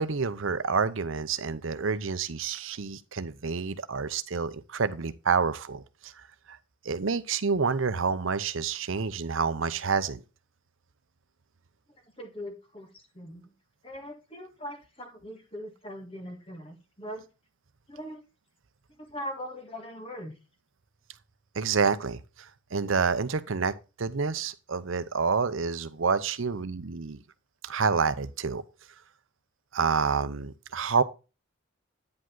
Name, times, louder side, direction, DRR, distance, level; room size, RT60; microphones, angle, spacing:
voice 1, 0.0-6.6 6.8-10.2 21.5-27.2 27.6-28.6 29.7-31.0, right 5 dB, 70° right, 0.7 m, -28 dB
voice 2, 12.2-13.5 13.8-17.3 17.9-18.2 19.1-20.4, equal, 25° left, 1.7 m, -41 dB
9.5 x 5.1 x 3.8 m
head